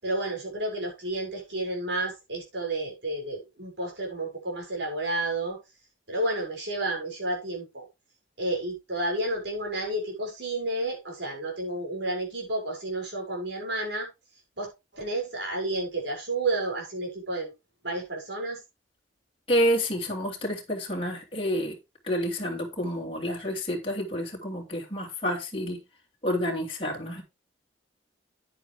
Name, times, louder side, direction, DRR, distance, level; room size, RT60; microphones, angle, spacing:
voice 1, 0.0-5.6 6.1-7.9 8.4-14.1 14.6-17.5 17.8-18.6, right 2 dB, 65° right, 6.6 m, -31 dB
voice 2, 19.5-21.8 22.0-25.8 26.2-27.2, equal, 30° left, 2.9 m, -29 dB
9.8 x 9.6 x 3.5 m
head